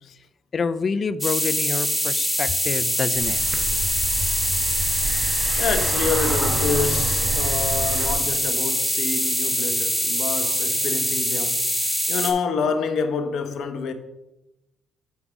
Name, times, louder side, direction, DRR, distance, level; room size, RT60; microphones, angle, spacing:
voice 1, 0.5-3.4, left 5 dB, 45° left, 0.4 m, -27 dB
sound 1, 1.2-12.3, equal, ahead, 1.6 m, -24 dB
sound 2, 3.1-8.1, right 3 dB, 40° right, 1.2 m, -29 dB
voice 2, 5.6-11.6 12.1-13.9, left 5 dB, 70° left, 0.9 m, -27 dB
7.1 x 4.8 x 6.1 m
cardioid pair, 90°, 0 cm